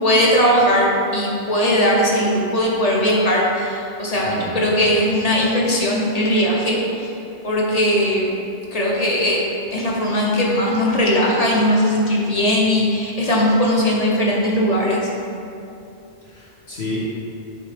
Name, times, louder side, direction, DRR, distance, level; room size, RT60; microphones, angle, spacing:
voice 1, 0.0-7.2 7.4-8.3 8.7-9.4 9.7-15.1, equal, 35° left, -3 dB, 1.1 m, -19 dB
voice 2, 4.2-4.7 16.2-17.0, left 2 dB, 65° left, -9 dB, 2.0 m, -30 dB
8.1 x 3.3 x 5.1 m, 2.6 s
omnidirectional pair, 1.2 m